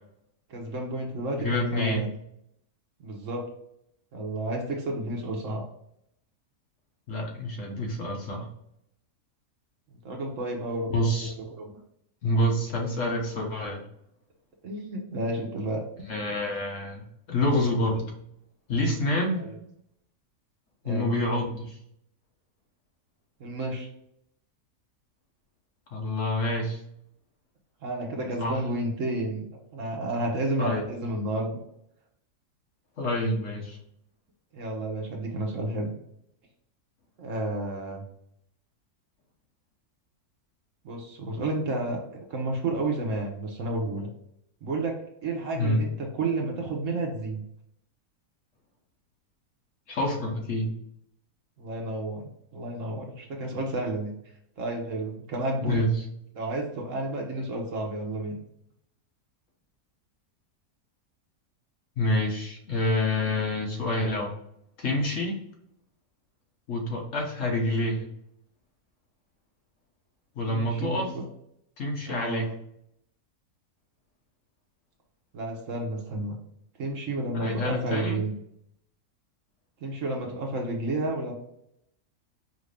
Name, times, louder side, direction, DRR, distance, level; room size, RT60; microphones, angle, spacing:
voice 1, 0.5-2.1 3.0-3.4 4.1-5.6 10.0-11.1 11.5-11.7 14.6-15.8 19.4-19.5 20.8-21.1 23.4-23.9 27.8-29.5 29.7-31.6 34.5-35.9 37.2-38.0 40.8-42.0 42.3-44.1 44.6-47.4 51.6-52.2 52.5-54.1 54.6-55.9 56.3-58.4 70.5-71.3 72.1-72.5 75.3-76.4 76.8-78.4 79.8-81.3, right 2 dB, 60° right, 1 dB, 1.2 m, -31 dB
voice 2, 1.4-2.1 7.1-8.5 10.9-11.3 12.2-13.8 16.1-18.1 18.7-19.5 20.8-21.8 25.9-26.8 28.4-28.6 30.6-30.8 33.0-33.8 45.5-45.8 49.9-50.7 55.6-55.9 62.0-64.3 64.8-65.4 66.7-68.1 70.3-71.1 71.8-72.4 77.3-78.2, left 1 dB, 60° left, 1 dB, 1.2 m, -27 dB
4.9 x 2.6 x 3.3 m, 0.75 s
omnidirectional pair, 1.6 m